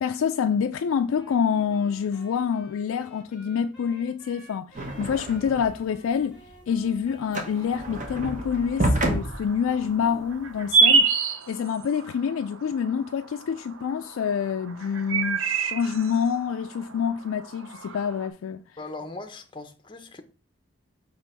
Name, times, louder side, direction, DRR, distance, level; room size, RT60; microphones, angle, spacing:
voice 1, 0.0-6.4 6.7-18.6, left 7 dB, 85° left, 0.3 m, -27 dB
Wind instrument woodwind instrument, 1.1-8.1, left 1 dB, ahead, 2.7 m, -50 dB
sound 1, 4.7-5.9 6.2-10.8, right 1 dB, 35° right, 0.9 m, -29 dB
sound 2, 7.5-18.3, right 4 dB, 85° right, 0.7 m, -28 dB
voice 2, 18.8-20.2, left 2 dB, 25° left, 0.6 m, -39 dB
6.2 x 3.0 x 5.4 m
head